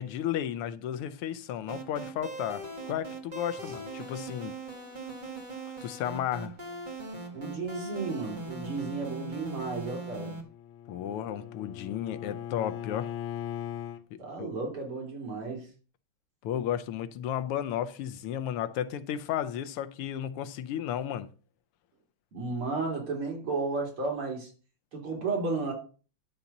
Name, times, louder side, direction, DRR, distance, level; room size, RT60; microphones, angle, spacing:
voice 1, 0.0-4.5 5.8-6.5 10.9-13.1 14.4-14.5 16.4-21.3, left 10 dB, 90° left, 1.7 m, -33 dB
sound 1, 1.7-10.4, right 2 dB, 20° right, 1.8 m, -40 dB
voice 2, 7.3-10.3 14.2-15.7 22.3-24.5 24.9-25.7, right 3 dB, 75° right, 4.1 m, -33 dB
Bowed string instrument, 10.2-14.0, left 10 dB, 70° left, 1.4 m, -39 dB
11.5 x 3.9 x 7.1 m
omnidirectional pair, 2.4 m